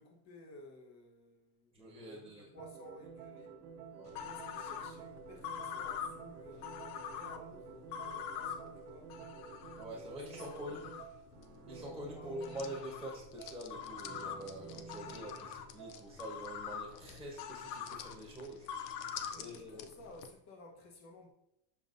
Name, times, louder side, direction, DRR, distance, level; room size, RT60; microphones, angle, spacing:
voice 1, 0.0-3.6 4.1-9.2 10.3-10.8 12.2-12.3 19.3-21.3, left 2 dB, 35° left, 1.2 m, -55 dB
voice 2, 1.7-2.5 3.9-4.1 9.8-10.9 11.7-18.7 19.3-19.9, equal, ahead, 1.2 m, -45 dB
sound 1, 2.5-16.1, right 6 dB, 80° right, 1.4 m, -51 dB
sound 2, 4.1-20.3, left 8 dB, 65° left, 0.7 m, -45 dB
7.2 x 5.2 x 2.6 m
supercardioid pair, 140°, 48 cm